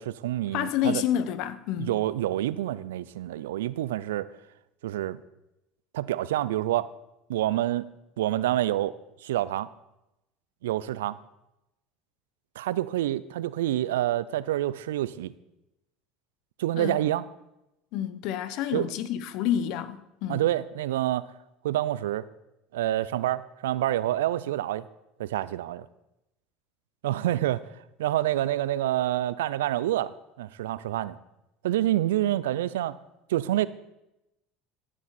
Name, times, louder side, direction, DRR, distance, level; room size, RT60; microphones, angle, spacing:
voice 1, 0.0-1.0 1.8-4.3 4.8-5.2 5.9-6.9 7.3-7.8 8.2-9.7 10.6-11.2 12.6-15.3 16.6-17.2 18.7-18.9 20.3-21.3 21.6-22.3 22.7-24.9 25.2-25.9 27.0-31.2 31.6-33.0 33.3-33.7, right 13 dB, 80° right, 0.4 m, -27 dB
voice 2, 0.5-1.9 16.8-17.0 17.9-20.4, left 10 dB, 65° left, 0.7 m, -29 dB
14.5 x 7.4 x 4.2 m
hypercardioid pair, 75°, 0 cm